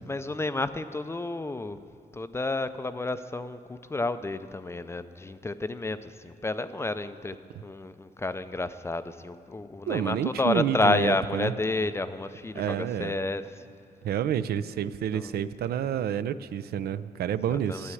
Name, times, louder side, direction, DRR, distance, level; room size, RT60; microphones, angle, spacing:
voice 1, 0.1-1.8 2.1-13.6 15.1-15.4 17.3-17.9, left 2 dB, 15° left, 12 dB, 0.4 m, -30 dB
voice 2, 9.9-11.5 12.6-13.1 14.0-17.9, right 9 dB, 75° right, 14 dB, 0.5 m, -29 dB
13.0 x 8.5 x 9.8 m, 2.4 s
cardioid pair, 135°, 16 cm